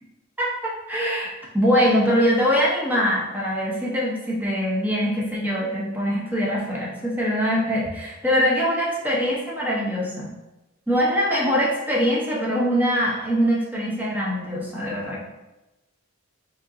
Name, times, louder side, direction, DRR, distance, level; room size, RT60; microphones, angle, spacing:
voice 1, 0.4-10.3 10.9-15.2, equal, 10° right, -5 dB, 1.1 m, -23 dB
5.4 x 3.5 x 2.8 m, 1.0 s
head